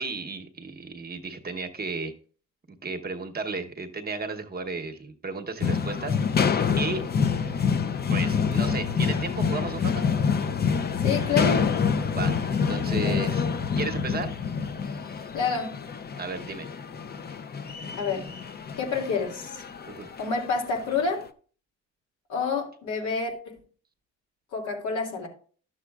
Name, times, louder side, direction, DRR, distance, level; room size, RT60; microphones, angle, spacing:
voice 1, 0.0-2.1 2.8-6.2 6.8-7.0 8.1-10.0 12.1-13.5 13.8-14.3 16.2-16.7 19.9-20.1, right 3 dB, 30° right, 1.0 m, -34 dB
sound 1, 5.6-20.9, left 6 dB, 35° left, 0.6 m, -27 dB
voice 2, 11.0-11.7 12.8-13.2 15.3-15.8 17.9-18.3 18.8-19.6 20.2-21.2 22.3-23.6 24.5-25.3, left 5 dB, 80° left, 2.5 m, -28 dB
11.5 x 7.2 x 2.4 m
cardioid pair, 90°, 30 cm